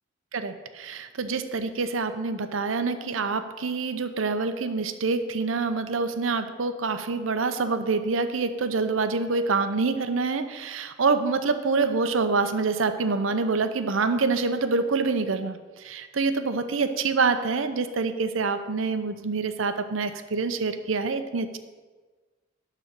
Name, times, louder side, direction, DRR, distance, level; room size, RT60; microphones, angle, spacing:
voice 1, 0.3-21.6, right 4 dB, 85° right, 9 dB, 0.7 m, -26 dB
12.0 x 4.2 x 6.4 m, 1.4 s
head